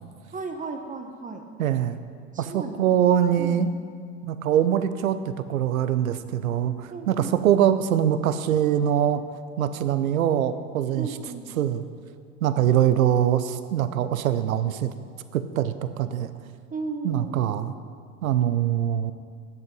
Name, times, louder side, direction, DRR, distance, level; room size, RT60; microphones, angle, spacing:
voice 1, 0.3-1.5 2.3-3.0 3.4-3.7 6.9-7.3 11.0-11.5 16.7-17.4, right 4 dB, 20° right, 5 dB, 1.0 m, -35 dB
voice 2, 1.6-2.0 2.4-3.7 4.2-9.2 9.6-11.1 11.6-11.8 12.4-14.9 15.3-16.3 17.0-17.7 18.2-19.1, right 10 dB, 85° right, 12 dB, 0.7 m, -23 dB
9.5 x 7.8 x 5.4 m, 2.1 s
hypercardioid pair, 80°, 41 cm